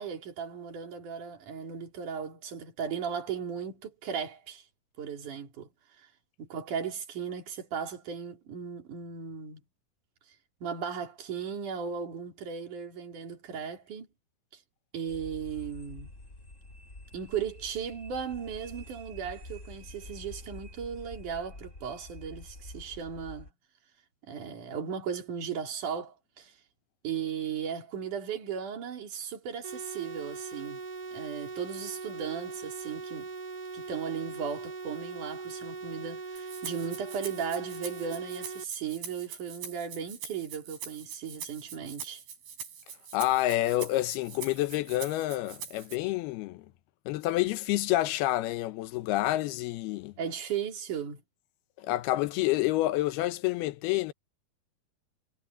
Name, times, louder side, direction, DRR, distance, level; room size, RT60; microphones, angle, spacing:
voice 1, 0.0-4.6 5.0-5.7 6.4-9.6 10.6-14.1 14.9-16.1 17.1-23.5 24.2-26.5 27.0-30.8 31.1-33.3 33.7-42.2 50.2-51.2, right 7 dB, 55° right, 4.6 m, -36 dB
sound 1, 15.1-23.5, left 2 dB, 20° left, 3.3 m, -47 dB
sound 2, 29.6-38.6, right 4 dB, 15° right, 1.9 m, -40 dB
Rattle (instrument), 36.4-46.0, right 7 dB, 80° right, 6.1 m, -44 dB
voice 2, 43.1-46.7 47.1-50.1 51.8-54.1, left 16 dB, 85° left, 2.8 m, -28 dB
omnidirectional pair, 4.5 m